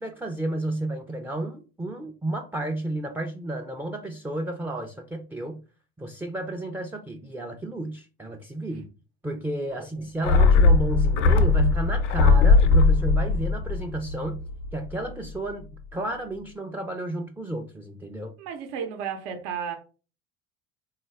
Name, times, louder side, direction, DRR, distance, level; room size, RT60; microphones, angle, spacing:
voice 1, 0.0-5.6 6.0-8.9 9.2-14.4 14.7-18.4, right 1 dB, 5° right, 0.4 m, -32 dB
sound 1, 10.2-14.8 15.1-15.2, left 4 dB, 85° left, 0.5 m, -19 dB
voice 2, 18.4-19.8, right 7 dB, 70° right, 0.8 m, -33 dB
3.7 x 2.3 x 3.2 m
hypercardioid pair, 70°, 35 cm